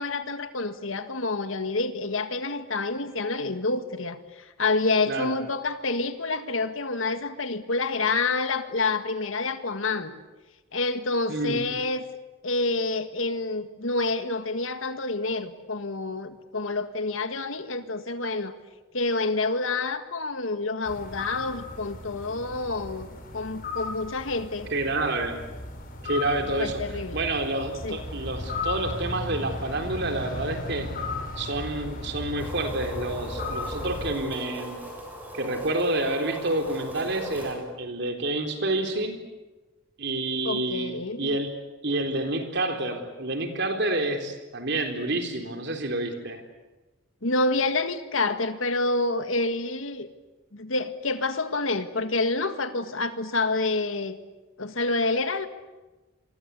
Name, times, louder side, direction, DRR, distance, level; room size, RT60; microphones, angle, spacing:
voice 1, 0.0-4.2 4.6-10.1 10.7-12.0 12.4-18.5 18.9-23.1 23.3-24.7 26.4-27.2 27.8-28.0 40.4-41.4 47.2-50.1 50.5-54.2 54.6-55.5, left 3 dB, 90° left, 9 dB, 1.8 m, -28 dB
voice 2, 11.3-11.6 24.7-25.4 26.0-26.8 27.1-30.9 31.4-34.8 35.3-39.2 40.0-40.9 41.2-41.6 41.8-46.4, right 2 dB, 60° right, 5 dB, 3.9 m, -28 dB
sound 1, 20.8-34.1, left 3 dB, 45° left, 5.4 m, -36 dB
sound 2, 32.4-37.5, right 1 dB, 10° right, 7.8 m, -38 dB
28.0 x 23.5 x 8.4 m, 1.1 s
head